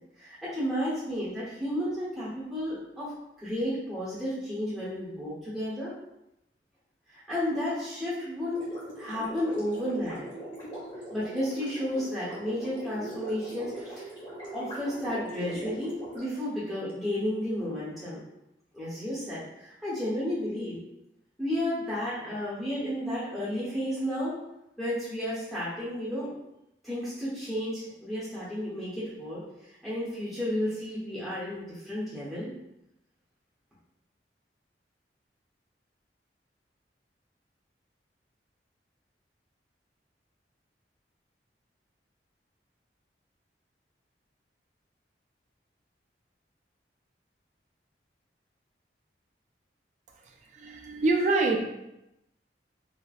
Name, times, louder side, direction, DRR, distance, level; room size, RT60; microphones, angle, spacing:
voice 1, 0.2-3.1 3.4-5.9 7.1-8.6 9.0-10.3 11.1-14.1 14.5-18.2 18.7-20.8 21.4-24.3 24.8-26.3 26.8-29.4 29.8-32.5, equal, ahead, -10 dB, 0.8 m, -32 dB
Gurgling, 8.5-16.9, right 1 dB, 25° left, 1.1 m, -41 dB
voice 2, 50.5-51.6, right 3 dB, 40° right, 1 dB, 0.4 m, -25 dB
4.0 x 2.0 x 2.4 m, 0.87 s
head